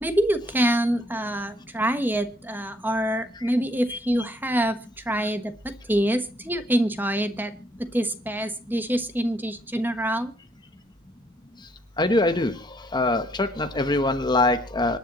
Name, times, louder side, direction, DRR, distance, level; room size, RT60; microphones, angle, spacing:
voice 1, 0.0-7.5 7.8-10.3, right 1 dB, 10° right, 9 dB, 1.2 m, -25 dB
voice 2, 12.0-12.5 12.9-15.0, left 2 dB, 20° left, 8 dB, 0.9 m, -23 dB
26.0 x 10.0 x 3.0 m, 0.34 s
head